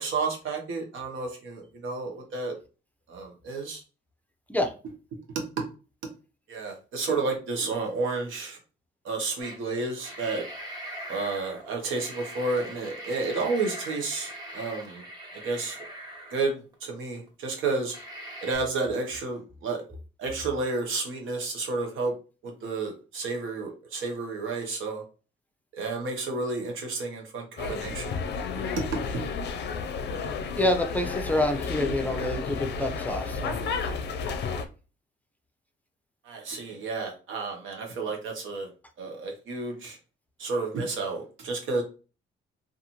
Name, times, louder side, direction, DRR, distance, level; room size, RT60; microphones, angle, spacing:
voice 1, 0.0-2.5 3.1-3.8 5.6-5.7 6.5-8.6 9.0-10.4 11.1-15.0 15.4-15.8 16.3-16.5 16.8-17.9 18.4-19.8 20.2-22.1 22.4-25.0 25.8-28.2 29.1-29.3 36.3-38.7 39.0-40.0 40.4-41.8, right 3 dB, 85° right, 2 dB, 0.9 m, -31 dB
sound 1, 9.4-9.6 9.9-16.7 17.3-17.4 17.9-18.6, right 1 dB, 20° right, 0.9 m, -41 dB
sound 2, 27.6-34.7, left 5 dB, 60° left, 0.5 m, -32 dB
voice 2, 30.6-33.6, left 1 dB, 10° left, 4 dB, 0.5 m, -27 dB
2.5 x 2.5 x 2.8 m, 0.34 s
cardioid pair, 90°, 20 cm